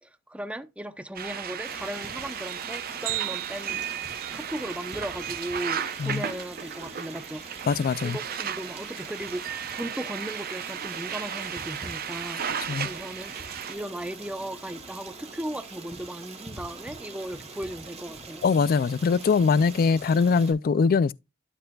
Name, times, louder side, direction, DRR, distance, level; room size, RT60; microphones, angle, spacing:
voice 1, 0.0-3.8 4.3-7.5 8.0-12.4 12.8-18.4, right 1 dB, 5° right, 0.7 m, -37 dB
sound 1, 1.2-13.8, right 9 dB, 50° right, 0.8 m, -34 dB
Stream, 1.6-20.5, right 3 dB, 35° right, 2.2 m, -43 dB
voice 2, 7.7-8.2 12.7-12.9 18.4-21.1, left 5 dB, 50° left, 0.3 m, -22 dB
12.5 x 5.6 x 2.3 m
head